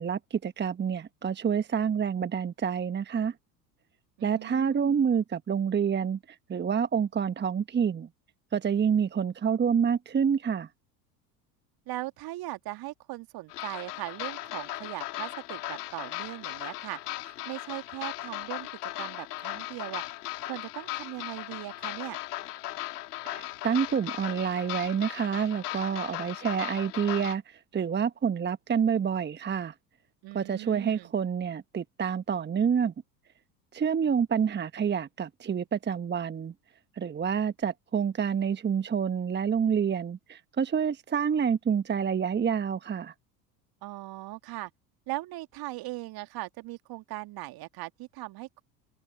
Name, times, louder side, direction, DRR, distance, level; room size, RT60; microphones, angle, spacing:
voice 1, 0.0-3.3 4.2-8.1 8.5-10.7 23.2-29.7 30.3-32.9 33.7-36.5 37.0-43.1, right 7 dB, 20° right, 1.3 m, -28 dB
voice 2, 4.2-5.0 11.9-18.7 19.0-20.0 20.4-22.2 30.2-31.1 43.8-44.7 45.1-48.6, right 18 dB, 45° right, 2.5 m, -39 dB
sound 1, 13.5-27.3, left 16 dB, 70° left, 3.6 m, -37 dB
open air
figure-of-eight pair, 70°, 49 cm